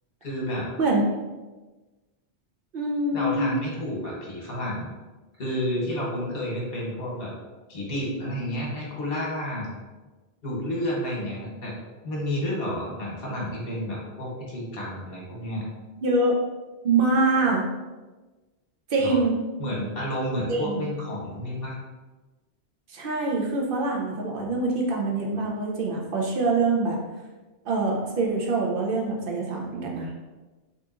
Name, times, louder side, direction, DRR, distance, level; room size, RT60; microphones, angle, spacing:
voice 1, 0.2-0.7 3.1-4.9 5.4-7.3 7.7-9.7 10.4-11.7 12.0-15.7 19.0-19.2 19.6-21.7, equal, 60° left, -3 dB, 1.1 m, -30 dB
voice 2, 2.7-3.5 16.0-16.4 16.8-17.7 18.9-19.4 20.5-20.9 22.9-27.0 27.7-30.1, right 3 dB, 60° right, -1 dB, 0.7 m, -24 dB
3.6 x 2.8 x 2.4 m, 1.2 s
omnidirectional pair, 1.1 m